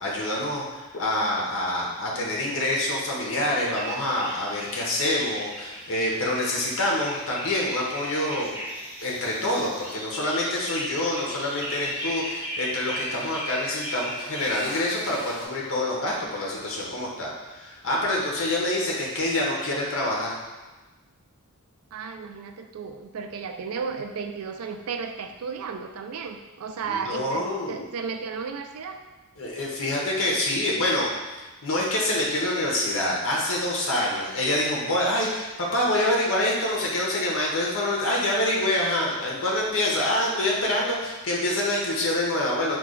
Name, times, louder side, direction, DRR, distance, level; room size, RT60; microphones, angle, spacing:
voice 1, 0.0-8.5 9.0-20.4 26.9-27.9 29.4-31.1 31.4-42.8, left 1 dB, 60° left, -2 dB, 0.7 m, -26 dB
sound 1, 3.3-15.5, equal, 10° right, 0.8 m, -36 dB
voice 2, 21.9-29.0, right 5 dB, 70° right, 5 dB, 0.3 m, -34 dB
3.1 x 2.3 x 3.7 m, 1.2 s
head